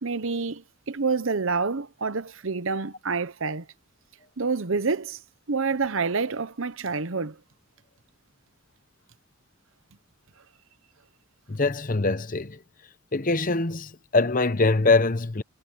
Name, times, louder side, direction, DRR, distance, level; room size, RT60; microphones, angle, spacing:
voice 1, 0.0-3.7 4.4-5.2 5.5-7.4, right 4 dB, 60° right, 0.9 m, -27 dB
voice 2, 11.5-12.6 13.1-15.4, left 3 dB, 40° left, 0.8 m, -23 dB
head